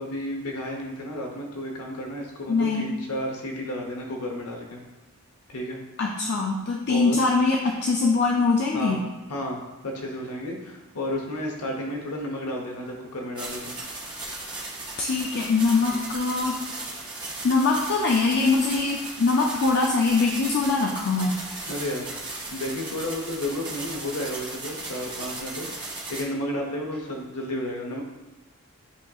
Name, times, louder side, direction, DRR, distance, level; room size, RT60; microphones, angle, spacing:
voice 1, 0.0-4.8 5.5-5.8 6.9-7.2 8.7-9.0 9.3-9.6 9.8-13.8 15.8-16.0 21.7-22.1 22.5-28.0, left 1 dB, 85° left, 1 dB, 0.8 m, -32 dB
voice 2, 2.5-2.9 6.0-9.0 15.0-16.6 17.4-21.4, left 4 dB, 50° left, -1 dB, 0.4 m, -23 dB
sound 1, 13.4-26.2, right 2 dB, 20° right, 0.8 m, -36 dB
8.2 x 2.8 x 2.3 m, 1.1 s
head